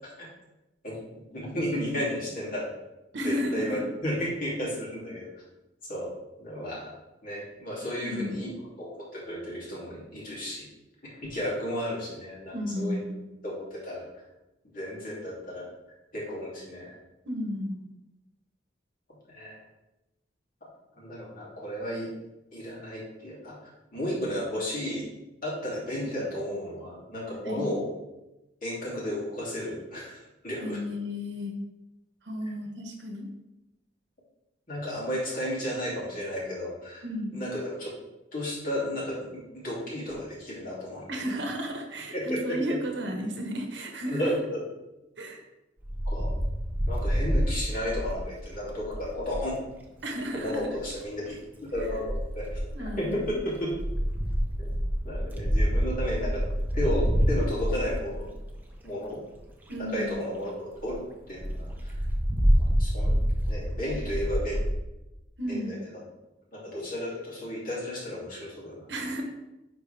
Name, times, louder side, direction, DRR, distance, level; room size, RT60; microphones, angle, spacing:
voice 1, 1.3-2.6 3.2-5.3 5.9-6.1 6.4-6.9 7.2-8.5 8.8-10.7 11.0-13.0 13.4-14.0 14.7-15.7 16.1-17.0 19.3-19.6 20.9-22.1 22.5-23.5 23.9-25.1 25.4-27.9 28.6-30.8 34.7-37.0 37.3-37.9 38.3-41.0 42.1-42.6 44.1-44.6 46.0-46.3 46.9-49.5 50.3-52.6 53.0-53.7 54.6-54.7 55.0-56.4 56.7-58.3 58.8-59.2 59.9-61.0 61.3-61.9 62.8-63.1 63.5-64.6 65.5-65.8 66.5-68.9, left 1 dB, 50° left, -6 dB, 2.8 m, -33 dB
voice 2, 3.1-3.9 8.0-8.4 12.5-13.2 17.2-17.8 27.4-27.7 30.6-31.5 32.2-33.2 37.0-37.4 41.1-44.3 45.2-45.4 50.0-50.7 51.8-51.9 52.7-53.4 59.7-60.1 65.4-65.8 68.9-69.2, equal, 70° right, 3 dB, 1.2 m, -33 dB
Wind, 45.8-49.5 50.6-51.0 51.7-58.7 59.3-59.4 59.7-59.8 60.1-60.2 60.5-60.6 60.8-60.9 61.4-64.7, equal, 10° right, 0.9 m, -27 dB
10.0 x 4.4 x 3.4 m, 0.99 s
head